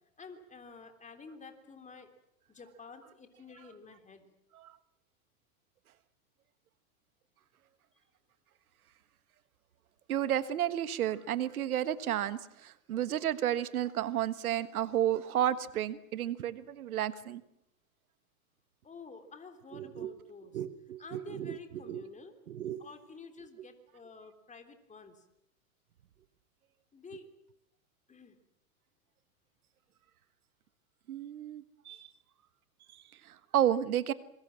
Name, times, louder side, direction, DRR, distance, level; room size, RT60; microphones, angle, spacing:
voice 1, 0.2-2.1 2.5-4.2 18.8-20.6 21.0-22.3 22.8-25.2 26.9-27.3 28.1-28.4, left 4 dB, 15° left, 6 dB, 3.4 m, -50 dB
voice 2, 10.1-17.4 19.7-20.1 20.5-22.0 22.5-22.8 31.1-32.1 32.9-34.1, right 11 dB, 85° right, 14 dB, 1.5 m, -32 dB
27.0 x 22.0 x 7.5 m, 0.79 s
hypercardioid pair, 115°, 42 cm